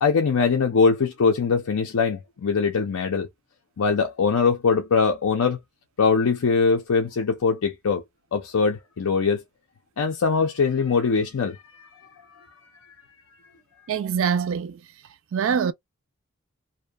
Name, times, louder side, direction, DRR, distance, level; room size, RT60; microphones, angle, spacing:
voice 1, 0.0-3.3 3.8-5.6 6.0-8.0 8.3-9.4 10.0-11.9 12.4-12.5, left 5 dB, 75° left, 0.5 m, -22 dB
voice 2, 13.9-14.8 15.3-15.7, right 7 dB, 60° right, 0.3 m, -24 dB
2.6 x 2.1 x 2.2 m
head